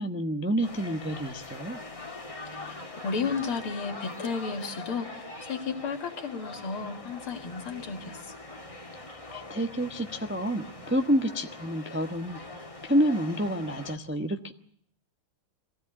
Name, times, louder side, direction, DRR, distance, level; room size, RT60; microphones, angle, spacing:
voice 1, 0.0-1.8 9.3-14.5, equal, 10° right, 5 dB, 0.6 m, -29 dB
sound 1, 0.6-14.0, left 2 dB, 15° left, 1.7 m, -43 dB
voice 2, 2.5-8.4, left 5 dB, 75° left, 5 dB, 2.8 m, -33 dB
23.0 x 16.0 x 8.8 m, 0.64 s
omnidirectional pair, 2.4 m